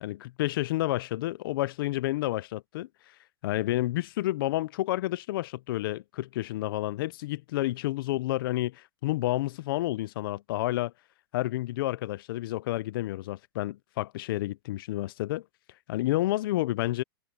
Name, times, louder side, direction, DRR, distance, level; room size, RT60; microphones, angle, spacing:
voice 1, 0.0-2.9 3.4-10.9 11.3-15.4 15.9-17.0, left 16 dB, 60° left, 0.7 m, -30 dB
hypercardioid pair, 140°, 13 cm